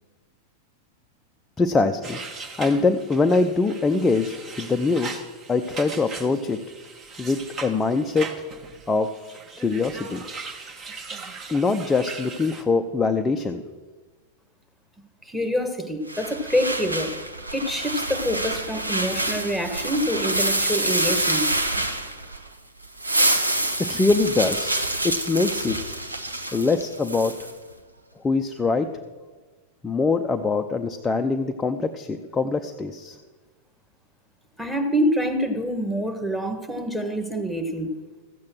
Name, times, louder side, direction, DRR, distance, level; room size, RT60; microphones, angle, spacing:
voice 1, 1.6-2.2 2.6-5.2 5.5-6.6 7.2-8.3 8.9-9.1 9.6-10.2 11.5-13.6 23.8-26.0 26.5-27.4 28.2-28.9 29.8-33.2, left 3 dB, 15° left, 5 dB, 0.6 m, -23 dB
sound 1, 2.0-12.6, right 4 dB, 25° right, 1.4 m, -39 dB
voice 2, 15.2-17.1 17.5-21.8 34.6-37.9, equal, ahead, 8 dB, 1.6 m, -26 dB
sound 2, 16.1-22.5 22.8-27.5, right 1 dB, 85° right, 1.0 m, -26 dB
14.0 x 8.5 x 6.2 m, 1.4 s
figure-of-eight pair, 90°, 0 cm